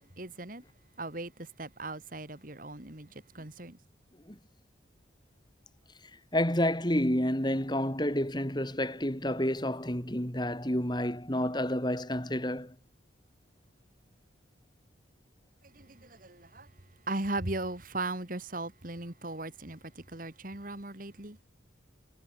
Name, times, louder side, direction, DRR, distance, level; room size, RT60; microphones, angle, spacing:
voice 1, 0.2-0.6 1.0-3.8 15.7-16.7 17.1-21.4, right 2 dB, 45° right, 2.3 m, -38 dB
voice 2, 6.3-12.8, left 1 dB, 20° left, 3.6 m, -29 dB
head